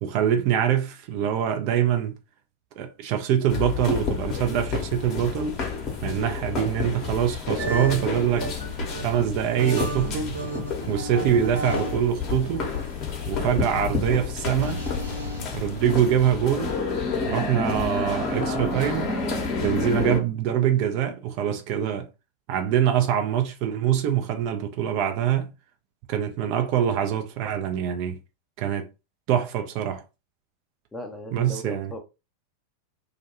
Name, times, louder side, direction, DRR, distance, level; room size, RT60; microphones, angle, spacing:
voice 1, 0.0-2.1 2.8-5.6 6.0-8.5 9.0-10.4 10.9-12.7 13.3-14.8 15.5-16.8 17.3-19.1 19.6-22.1 22.5-25.5 26.1-28.2 28.6-28.9 29.3-30.0 31.3-31.9, right 9 dB, 45° right, 0.5 m, -24 dB
sound 1, 3.5-20.2, left 4 dB, 35° left, 0.9 m, -30 dB
sound 2, 7.6-12.0 12.3-15.7, right 1 dB, 75° right, 1.0 m, -33 dB
voice 2, 30.9-32.0, left 1 dB, 10° left, 0.7 m, -37 dB
2.4 x 2.2 x 2.9 m
figure-of-eight pair, 90°, 0 cm